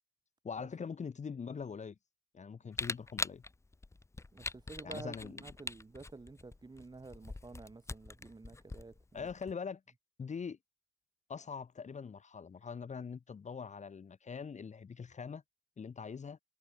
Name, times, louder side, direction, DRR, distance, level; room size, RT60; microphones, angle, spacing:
voice 1, 0.4-2.0 2.3-3.4 4.8-5.4 9.1-9.8 10.2-10.6 11.3-15.4 15.8-16.4, left 6 dB, 35° left, 1.5 m, -43 dB
Camera, 2.7-9.5, left 3 dB, 15° left, 0.7 m, -42 dB
voice 2, 4.3-9.3, right 3 dB, 20° right, 1.9 m, -50 dB
cardioid pair, 90°, 20 cm